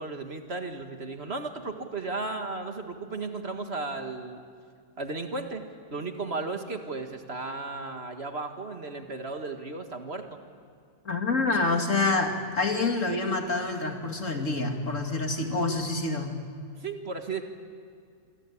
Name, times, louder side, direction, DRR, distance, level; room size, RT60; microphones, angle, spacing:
voice 1, 0.0-4.4 5.0-10.4 16.8-17.4, right 3 dB, 40° right, 5 dB, 2.0 m, -35 dB
voice 2, 11.0-16.3, left 3 dB, 45° left, 3 dB, 2.8 m, -27 dB
27.5 x 24.0 x 8.6 m, 2.2 s
omnidirectional pair, 1.8 m